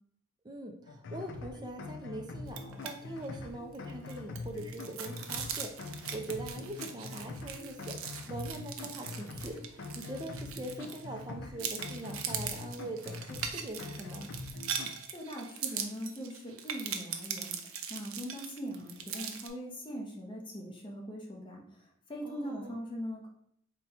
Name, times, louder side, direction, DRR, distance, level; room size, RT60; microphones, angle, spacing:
voice 1, 0.4-14.3 22.2-22.8, right 1 dB, 20° right, 3 dB, 0.4 m, -42 dB
sound 1, 0.9-15.0, left 3 dB, 60° left, 0.4 m, -43 dB
sound 2, 2.5-2.9 3.2-3.4 3.7-11.2 11.6-19.5, right 7 dB, 85° right, 0.5 m, -40 dB
voice 2, 15.1-17.6 17.9-21.6 22.1-23.3, equal, 25° left, -1 dB, 0.7 m, -41 dB
4.1 x 2.2 x 4.1 m, 0.70 s
head